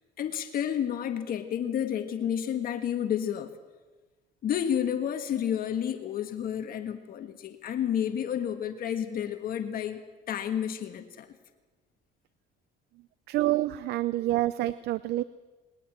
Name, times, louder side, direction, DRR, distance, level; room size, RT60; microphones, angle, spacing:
voice 1, 0.2-3.5 4.4-10.0 10.3-11.3, left 9 dB, 60° left, 7 dB, 1.6 m, -30 dB
voice 2, 13.3-15.2, right 16 dB, 75° right, 16 dB, 0.6 m, -27 dB
21.0 x 19.0 x 7.6 m, 1.3 s
cardioid pair, 110°, 17 cm